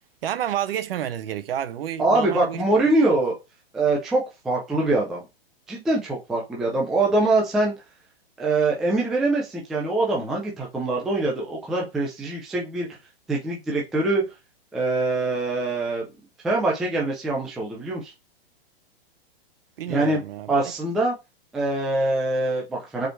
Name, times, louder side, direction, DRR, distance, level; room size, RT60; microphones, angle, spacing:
voice 1, 0.2-2.6 19.8-20.6, right 11 dB, 65° right, 1.0 m, -29 dB
voice 2, 2.0-3.4 3.7-5.2 5.7-7.7 8.4-12.9 13.3-14.2 14.7-16.1 16.4-18.1 19.9-20.2 20.5-21.1 21.5-23.1, right 2 dB, ahead, 0.3 m, -23 dB
5.2 x 4.4 x 4.4 m
hypercardioid pair, 160°, 31 cm